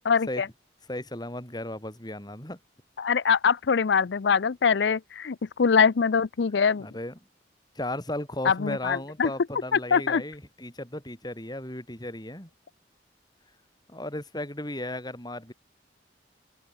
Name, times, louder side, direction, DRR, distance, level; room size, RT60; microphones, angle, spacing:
voice 1, 0.1-0.5 3.0-6.9 8.4-9.3 9.7-10.2, left 6 dB, 70° left, 0.5 m, -23 dB
voice 2, 0.9-2.6 6.8-7.1 7.8-12.5 13.9-15.5, left 1 dB, 20° left, 5.5 m, -35 dB
head